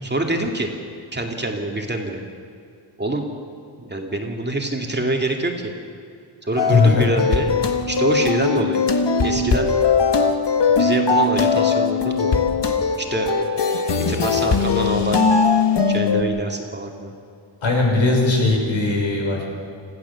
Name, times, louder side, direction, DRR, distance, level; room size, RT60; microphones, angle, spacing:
voice 1, 0.0-0.7 1.1-2.2 3.0-3.3 3.8-5.7 6.5-7.5 7.9-8.8 9.2-9.7 10.7-12.4 13.0-13.5 14.1-15.2 15.9-17.1, right 2 dB, 20° right, 2 dB, 2.3 m, -25 dB
sound 1, 6.6-16.2, left 5 dB, 60° left, 1.6 m, -20 dB
voice 2, 6.7-7.1 17.6-19.4, left 3 dB, 75° left, -1 dB, 5.9 m, -18 dB
26.0 x 15.0 x 7.0 m, 2.5 s
wide cardioid pair, 120°, 47 cm